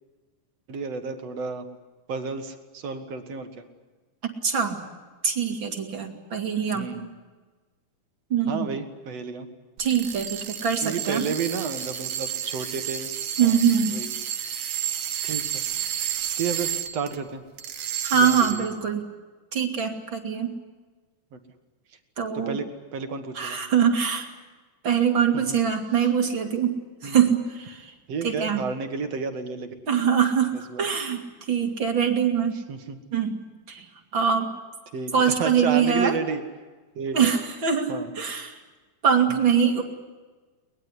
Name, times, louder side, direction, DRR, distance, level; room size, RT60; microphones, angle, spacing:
voice 1, 0.7-1.7 2.1-3.7 6.7-7.1 8.5-9.5 10.8-13.1 13.4-13.6 13.9-14.1 15.2-15.6 16.4-17.4 18.1-18.7 21.3-21.4 22.3-23.6 25.3-25.6 27.0-27.2 28.1-29.7 30.5-30.9 32.7-33.0 34.9-36.4 37.0-37.3 37.9-38.1 39.3-39.4, right 5 dB, 55° right, 7 dB, 2.6 m, -31 dB
voice 2, 4.2-4.8 5.2-6.9 8.3-8.7 9.8-11.2 13.4-14.0 18.0-19.0 19.5-20.5 22.2-22.6 23.3-24.3 24.8-26.8 27.0-27.9 28.2-28.6 29.9-31.2 31.5-32.6 33.1-33.8 34.1-34.5 35.1-36.1 37.1-38.6 39.0-39.8, right 7 dB, 40° right, 3 dB, 3.2 m, -23 dB
sound 1, 9.8-17.2 17.6-18.8, right 10 dB, 75° right, 2.8 m, -31 dB
23.0 x 21.0 x 9.9 m, 1.3 s
omnidirectional pair, 3.6 m